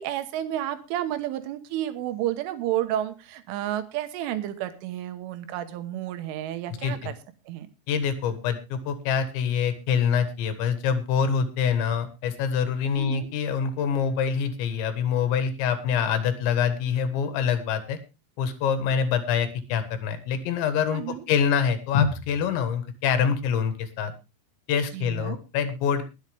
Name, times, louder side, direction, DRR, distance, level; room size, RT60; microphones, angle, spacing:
voice 1, 0.0-7.2 7.5-7.7 13.0-13.3 20.9-21.2 24.9-25.4, right 12 dB, 90° right, 9 dB, 3.6 m, -31 dB
voice 2, 6.7-7.1 7.9-18.0 18.4-24.1 24.7-26.0, left 7 dB, 75° left, 10 dB, 3.6 m, -25 dB
22.0 x 8.1 x 3.4 m, 0.28 s
omnidirectional pair, 5.4 m